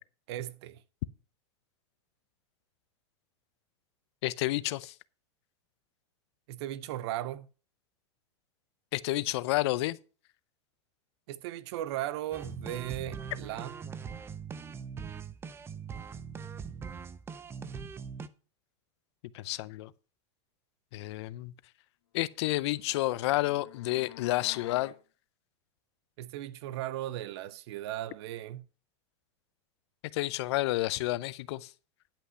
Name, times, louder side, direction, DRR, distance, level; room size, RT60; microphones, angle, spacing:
voice 1, 0.3-0.8 6.5-7.5 11.3-13.8 26.2-28.6, right 13 dB, 65° right, 0.6 m, -37 dB
voice 2, 4.2-4.9 8.9-10.0 19.3-19.9 20.9-21.5 22.1-24.9 30.1-31.7, left 17 dB, 65° left, 0.5 m, -30 dB
sound 1, 12.3-18.3, right 6 dB, 15° right, 0.5 m, -41 dB
sound 2, 22.4-25.0, left 12 dB, 80° left, 1.0 m, -50 dB
10.5 x 5.6 x 5.5 m
supercardioid pair, 130°, 15 cm